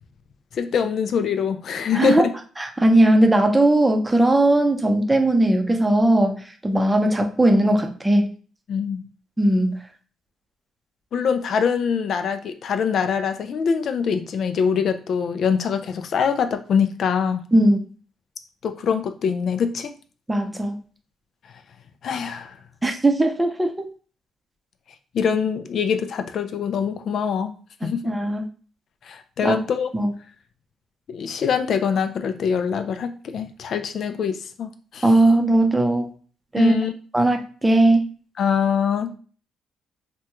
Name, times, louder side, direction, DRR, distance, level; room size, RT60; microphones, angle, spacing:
voice 1, 0.5-2.3 8.7-9.0 11.1-17.4 18.6-19.9 22.0-22.6 25.1-27.5 27.8-28.0 29.0-29.9 31.1-35.1 36.6-36.9 38.4-39.2, left 6 dB, 60° left, 8 dB, 0.3 m, -24 dB
voice 2, 1.9-2.3 2.6-8.3 9.4-9.8 17.5-17.8 20.3-20.8 22.8-23.9 27.8-28.4 29.4-29.6 29.9-30.1 35.0-36.1 36.5-36.7 37.1-38.0, right 1 dB, 15° right, 4 dB, 0.6 m, -18 dB
3.4 x 2.2 x 2.9 m, 0.40 s
cardioid pair, 90°, 0 cm